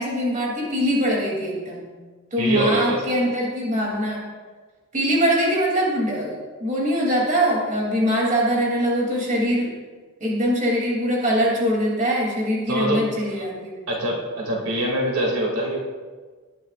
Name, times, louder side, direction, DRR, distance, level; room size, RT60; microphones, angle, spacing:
voice 1, 0.0-1.8 2.3-4.2 4.9-9.7 10.2-13.9, equal, 35° right, -3 dB, 3.1 m, -22 dB
voice 2, 2.4-3.0 12.7-13.4 13.9-15.8, right 1 dB, 75° right, -2 dB, 2.7 m, -24 dB
19.5 x 10.5 x 2.6 m, 1.4 s
head